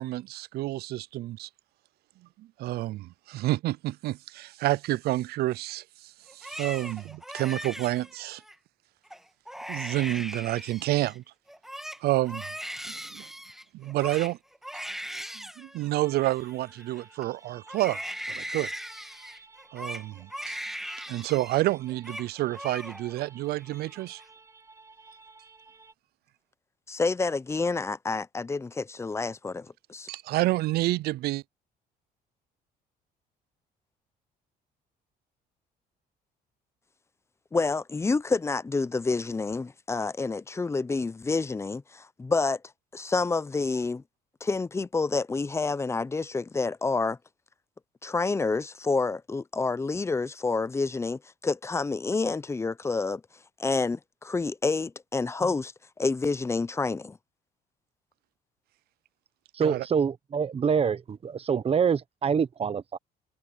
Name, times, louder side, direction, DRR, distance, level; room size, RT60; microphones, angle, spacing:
voice 1, 0.0-1.5 2.4-8.4 9.7-11.2 12.0-12.4 12.9-13.3 13.7-14.4 15.3-18.0 18.3-18.7 19.7-20.6 21.1-24.2 30.1-31.4 59.6-59.9, right 17 dB, 70° right, 0.4 m, -29 dB
Crying sobbing, 6.3-8.6 9.1-9.2 9.5-11.2 11.5-17.2 17.7-21.6 21.9-22.3 22.5-23.3 23.6-24.2, equal, ahead, 1.4 m, -39 dB
sound 1, 16.0-25.9, right 3 dB, 20° right, 3.9 m, -55 dB
voice 2, 26.9-30.1 37.5-42.6 42.9-44.0 44.4-47.2 48.0-53.2 53.6-55.7 56.0-57.2, left 3 dB, 15° left, 0.6 m, -28 dB
voice 3, 59.5-63.0, right 6 dB, 35° right, 1.1 m, -26 dB
cardioid pair, 110°, 17 cm